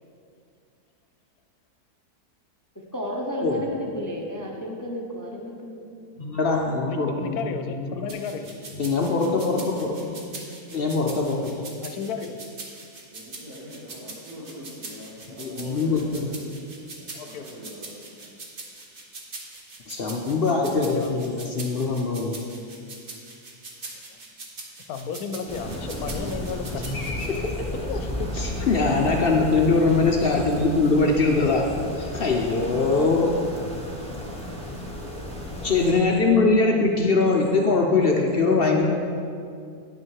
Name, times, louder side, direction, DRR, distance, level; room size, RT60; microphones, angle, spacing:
voice 1, 2.9-5.8, equal, 30° left, -1 dB, 0.3 m, -32 dB
voice 2, 6.2-7.4 7.7-8.0 8.7-9.9 10.7-11.5 15.4-16.3 19.9-22.4 26.7-27.7 28.3-31.7 32.0-33.3 35.6-38.9, left 3 dB, 55° left, 1 dB, 0.7 m, -22 dB
voice 3, 6.9-8.5 11.8-12.4 16.2-16.3 17.0-17.6 20.8-21.3 24.9-26.8 27.7-28.3 30.5-30.6 35.5-35.7, left 6 dB, 75° left, 7 dB, 1.1 m, -34 dB
sound 1, 8.1-27.3, right 3 dB, 40° right, 1.1 m, -42 dB
voice 4, 8.9-9.4 13.1-16.5 17.2-18.0, equal, 70° right, -6 dB, 1.9 m, -42 dB
sound 2, 25.5-35.9, equal, 5° left, 0.9 m, -33 dB
9.6 x 6.2 x 4.6 m, 2.4 s
omnidirectional pair, 1.6 m